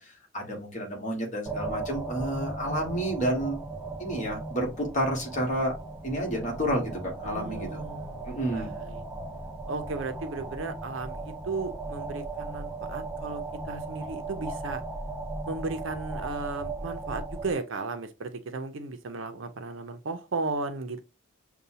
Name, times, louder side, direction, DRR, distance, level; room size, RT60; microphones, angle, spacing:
voice 1, 0.0-3.6 4.0-5.7 6.0-7.8 8.2-8.7, right 1 dB, 40° left, 1.4 m, -30 dB
sound 1, 1.5-17.5, right 3 dB, 5° right, 0.6 m, -37 dB
voice 2, 7.2-9.0 9.7-14.8 15.5-21.0, right 3 dB, 70° right, 0.6 m, -35 dB
6.7 x 2.3 x 2.7 m
head